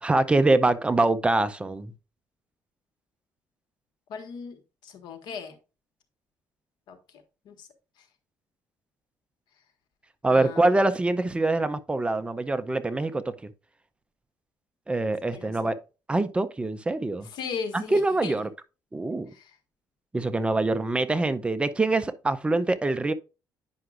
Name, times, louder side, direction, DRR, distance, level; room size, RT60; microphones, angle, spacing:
voice 1, 0.0-1.9 10.2-13.2 14.9-15.8 16.1-17.3 17.7-18.5 18.9-19.3 20.1-23.1, right 2 dB, 15° right, 0.6 m, -24 dB
voice 2, 4.1-4.5 4.8-5.5 6.9-7.0 7.4-7.7 10.3-10.7 15.3-15.5 17.3-18.3 19.3-19.5, left 6 dB, 75° left, 1.5 m, -37 dB
9.5 x 5.7 x 2.5 m
cardioid pair, 125°, 7 cm